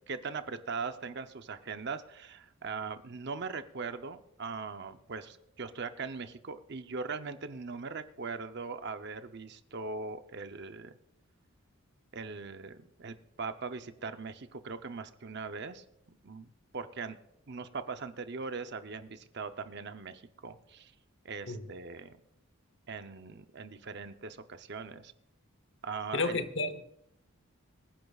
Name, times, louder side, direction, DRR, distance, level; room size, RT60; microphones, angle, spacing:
voice 1, 0.1-10.9 12.1-17.2 17.5-20.9 21.2-22.2 22.9-25.1 25.8-26.4, right 4 dB, 50° right, 0.7 m, -40 dB
voice 2, 26.1-26.8, left 3 dB, 55° left, 1.0 m, -31 dB
25.5 x 10.5 x 2.4 m
head